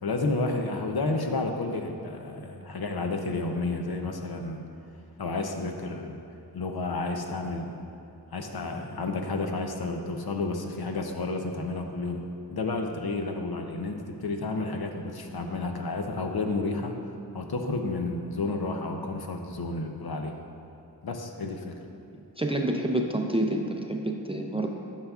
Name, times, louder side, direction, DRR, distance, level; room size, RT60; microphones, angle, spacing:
voice 1, 0.0-4.7 5.2-6.2 6.5-7.8 8.3-12.2 12.5-17.0 17.3-20.4 21.0-21.8, left 3 dB, 65° left, 4 dB, 0.6 m, -31 dB
voice 2, 22.4-24.7, right 1 dB, 15° right, 2 dB, 0.4 m, -28 dB
11.0 x 5.6 x 2.4 m, 2.6 s
wide cardioid pair, 70°, 41 cm